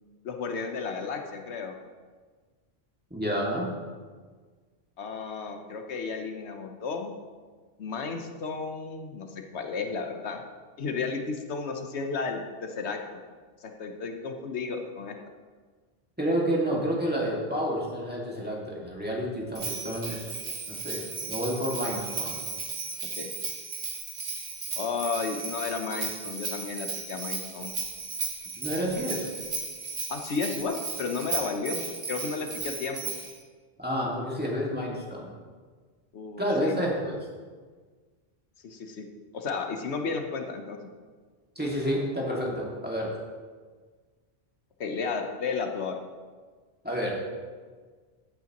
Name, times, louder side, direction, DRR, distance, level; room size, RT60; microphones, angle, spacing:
voice 1, 0.2-1.7 5.0-7.1 7.8-10.4 10.8-13.2 13.6-15.2 23.2-23.3 24.8-27.7 30.1-33.1 36.1-36.7 38.6-39.1 39.3-40.8 44.8-45.9, left 4 dB, 90° left, 4 dB, 1.2 m, -33 dB
voice 2, 3.1-3.7 16.2-20.4 20.7-22.4 28.6-29.3 33.8-35.3 36.4-37.2 41.6-43.1 46.8-47.4, equal, 10° right, -4 dB, 2.0 m, -29 dB
Bell, 19.5-33.4, right 4 dB, 75° right, 1.7 m, -35 dB
15.5 x 8.4 x 3.0 m, 1.5 s
omnidirectional pair, 1.1 m